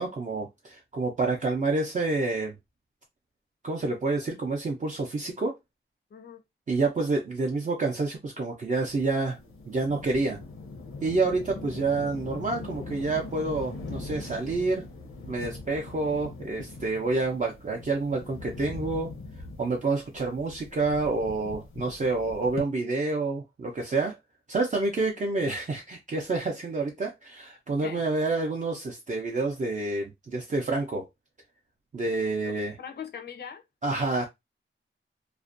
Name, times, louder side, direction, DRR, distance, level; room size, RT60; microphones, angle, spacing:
voice 1, 0.0-2.5 3.6-5.5 6.7-9.4 9.7-10.4 11.0-14.8 15.3-19.1 19.6-24.2 24.5-31.0 31.9-32.8 33.8-34.2, right 3 dB, 35° right, 0.4 m, -28 dB
voice 2, 6.1-6.4 27.8-28.0 32.5-33.6, left 7 dB, 50° left, 0.5 m, -41 dB
sound 1, 8.9-22.6, left 3 dB, 90° left, 0.7 m, -41 dB
2.4 x 2.1 x 2.4 m
wide cardioid pair, 170°, 21 cm